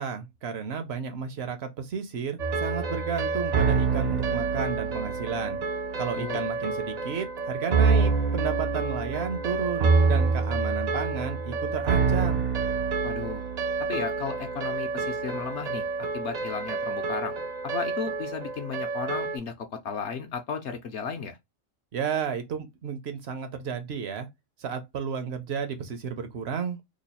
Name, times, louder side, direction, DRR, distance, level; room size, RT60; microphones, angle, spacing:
voice 1, 0.0-5.6 6.0-12.4 21.9-24.3 24.6-26.8, right 6 dB, 60° right, 0.7 m, -32 dB
sound 1, 2.4-19.4, right 4 dB, 80° right, 0.3 m, -27 dB
voice 2, 13.0-13.4 13.9-15.8 16.1-17.4 17.6-21.4, left 6 dB, 65° left, 0.8 m, -34 dB
3.0 x 2.3 x 4.1 m
omnidirectional pair, 1.5 m